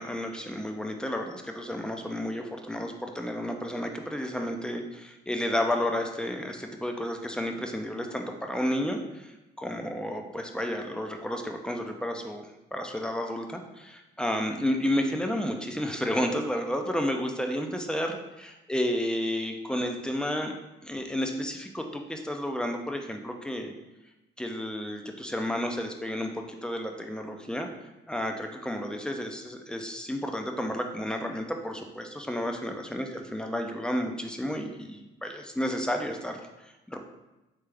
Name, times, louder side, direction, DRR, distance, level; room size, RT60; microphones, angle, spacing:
voice 1, 0.0-20.5 20.8-23.7 24.4-27.7 28.1-37.0, left 1 dB, 5° left, 3 dB, 0.5 m, -31 dB
3.5 x 3.4 x 3.4 m, 1.0 s
cardioid pair, 90°, 20 cm